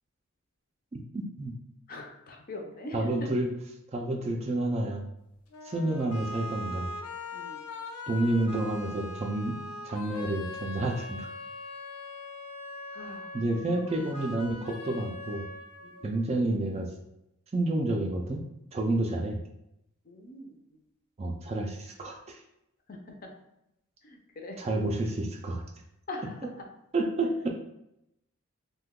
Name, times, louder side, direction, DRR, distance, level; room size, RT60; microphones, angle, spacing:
voice 1, 0.9-1.5 2.9-3.5 3.9-5.1 5.6-6.9 8.1-9.6 9.8-11.3 13.3-15.5 16.0-16.9 17.5-18.4 18.7-19.4 21.2-22.4 24.6-25.6 26.9-27.5, right 2 dB, 30° right, 2 dB, 0.3 m, -29 dB
voice 2, 1.9-3.3 7.3-7.6 12.9-13.4 15.8-16.1 20.0-20.8 22.9-23.3 24.0-24.6 26.1-26.5, left 2 dB, 40° left, 2 dB, 0.5 m, -42 dB
sound 1, 5.5-16.5, left 2 dB, 90° left, 0.5 m, -41 dB
2.7 x 2.2 x 3.6 m, 0.83 s
head